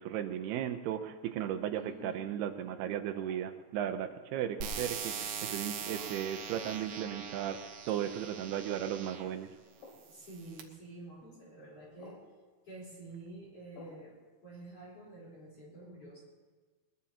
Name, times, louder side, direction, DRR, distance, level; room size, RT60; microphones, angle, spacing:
voice 1, 0.0-7.6 7.9-9.5, right 10 dB, 80° right, 8 dB, 2.7 m, -36 dB
sound 1, 1.4-1.7 3.1-3.5 4.6-4.9 5.9-6.2 7.0-7.2 7.9-8.1 9.2-9.4 9.8-10.0 11.2-11.4 12.0-12.3 13.7-14.0, left 3 dB, 75° left, 5.1 m, -54 dB
voice 2, 1.8-2.2 10.1-12.2 12.6-16.2, right 2 dB, 40° left, -5 dB, 4.8 m, -49 dB
sound 2, 4.6-9.3 10.0-10.6, right 7 dB, 65° right, 2.2 m, -41 dB
22.0 x 21.5 x 2.9 m, 1.4 s
omnidirectional pair, 4.6 m